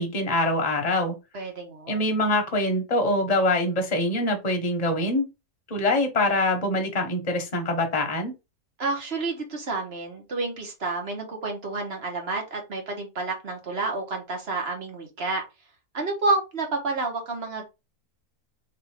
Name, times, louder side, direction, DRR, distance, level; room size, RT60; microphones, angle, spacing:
voice 1, 0.0-1.2 1.9-5.3 5.7-8.3, left 1 dB, 25° left, 1.1 m, -24 dB
voice 2, 1.3-2.0 8.8-15.4 15.9-17.6, right 3 dB, 45° right, 1.5 m, -29 dB
3.7 x 3.4 x 3.4 m
omnidirectional pair, 1.6 m